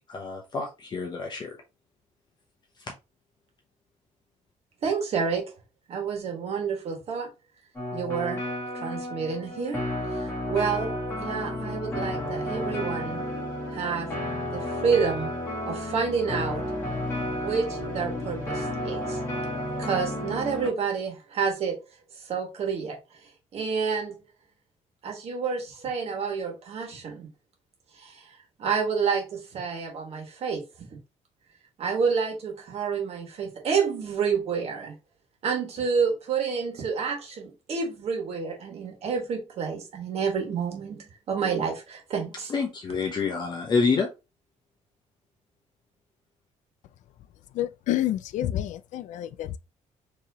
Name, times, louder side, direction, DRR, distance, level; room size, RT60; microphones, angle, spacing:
voice 1, 0.0-1.6 2.8-2.9 42.5-44.1, left 4 dB, 35° left, 0.7 m, -27 dB
voice 2, 4.8-5.4 5.9-7.3 7.9-8.4 8.7-9.8 10.1-10.9 11.2-13.2 13.7-14.1 14.5-15.3 15.7-16.6 17.4-19.2 19.8-21.7 22.2-23.0 23.5-24.2 25.0-27.3 28.0-28.2 28.6-30.6 31.8-34.9 35.4-42.5, right 6 dB, 50° right, 1.5 m, -29 dB
sound 1, 7.7-20.7, left 1 dB, 20° left, 1.7 m, -32 dB
voice 3, 47.5-49.6, left 13 dB, 70° left, 0.4 m, -29 dB
4.6 x 3.0 x 2.8 m
cardioid pair, 145°, 13 cm